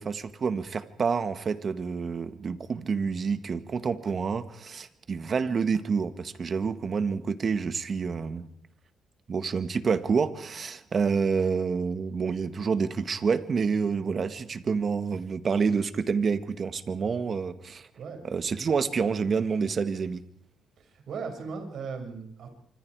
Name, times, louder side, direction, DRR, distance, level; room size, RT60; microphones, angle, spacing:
voice 1, 0.0-8.5 9.3-17.9 18.2-20.2, right 5 dB, 45° right, 11 dB, 1.8 m, -28 dB
voice 2, 20.8-22.5, right 5 dB, 65° right, 5 dB, 6.4 m, -37 dB
26.0 x 25.5 x 4.9 m, 0.65 s
cardioid pair, 90°, 0 cm